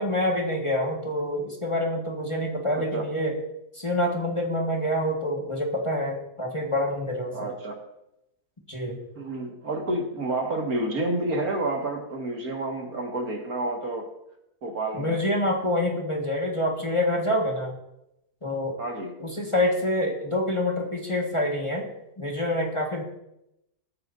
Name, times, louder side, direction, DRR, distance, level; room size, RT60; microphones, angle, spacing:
voice 1, 0.0-3.4 3.7-7.5 8.7-9.0 14.9-17.7 18.4-18.8 19.2-21.9 22.2-23.0, left 1 dB, 20° left, -2 dB, 1.7 m, -26 dB
voice 2, 7.3-7.8 9.2-14.1 14.6-15.2 18.8-19.1, right 2 dB, 70° right, 1 dB, 2.4 m, -29 dB
20.5 x 9.6 x 2.7 m, 0.84 s
omnidirectional pair, 1.6 m